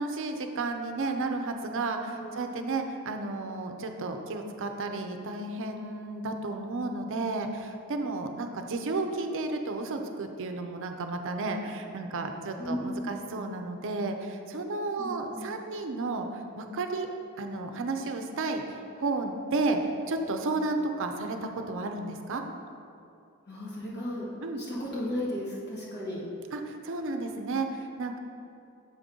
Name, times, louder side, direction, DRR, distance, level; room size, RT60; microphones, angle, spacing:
voice 1, 0.0-17.1 17.4-19.8 20.1-22.4 24.4-24.6 26.5-28.2, right 3 dB, 60° right, 5 dB, 0.5 m, -32 dB
voice 2, 2.1-2.4 12.6-13.2 15.0-15.5 23.5-24.3 24.6-26.2, left 1 dB, 50° left, -7 dB, 1.5 m, -35 dB
7.6 x 5.3 x 3.7 m, 2.5 s
head